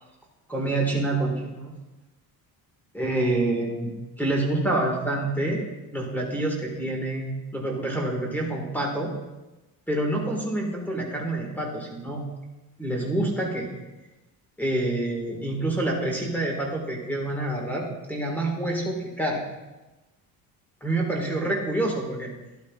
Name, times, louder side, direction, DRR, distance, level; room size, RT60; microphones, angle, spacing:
voice 1, 0.5-1.7 2.9-3.9 4.2-5.6 5.9-9.1 9.9-12.2 12.8-13.7 14.6-19.4 20.8-22.3, right 2 dB, 5° left, -1 dB, 1.8 m, -27 dB
13.0 x 11.5 x 2.4 m, 1.1 s
cardioid pair, 160°, 37 cm